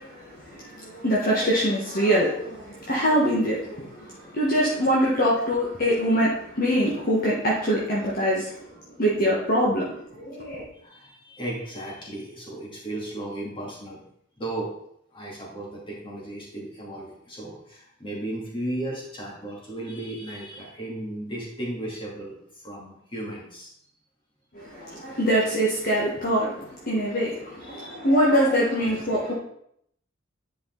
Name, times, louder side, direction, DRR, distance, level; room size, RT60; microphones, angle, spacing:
voice 1, 0.0-8.6 9.0-10.7 24.5-29.3, equal, 45° left, -5 dB, 1.6 m, -24 dB
voice 2, 10.7-14.0 14.4-14.7 15.1-22.3 22.6-23.7 27.6-28.0, right 1 dB, 25° left, -4 dB, 2.7 m, -35 dB
10.0 x 5.1 x 4.0 m, 0.71 s
head